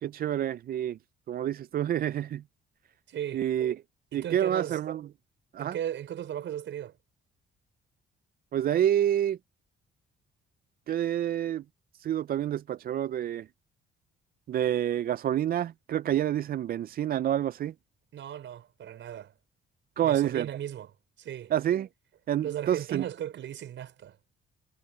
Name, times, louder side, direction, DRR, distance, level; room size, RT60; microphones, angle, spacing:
voice 1, 0.0-1.0 1.3-2.4 3.3-3.8 4.1-5.1 5.5-5.7 8.5-9.4 10.9-11.6 12.0-13.5 14.5-17.7 20.0-20.5 21.5-21.9 22.3-23.1, right 11 dB, 50° right, 0.4 m, -28 dB
voice 2, 3.1-3.5 4.1-4.8 5.6-6.9 18.1-19.3 20.0-20.9 21.2-21.5 22.4-24.2, right 10 dB, 70° right, 5.5 m, -36 dB
cardioid pair, 90°, 20 cm